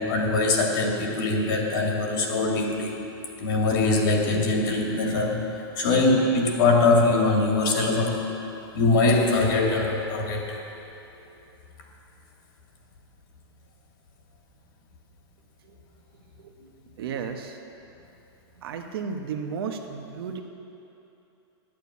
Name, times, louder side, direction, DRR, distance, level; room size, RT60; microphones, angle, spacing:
voice 1, 0.0-2.9 3.4-5.5 5.8-8.2 8.7-10.6, left 3 dB, 55° left, -1 dB, 2.4 m, -22 dB
voice 2, 17.0-17.6 18.6-20.4, right 6 dB, 65° right, 4 dB, 1.1 m, -33 dB
9.9 x 9.2 x 8.3 m, 2.9 s
supercardioid pair, 160°, 13 cm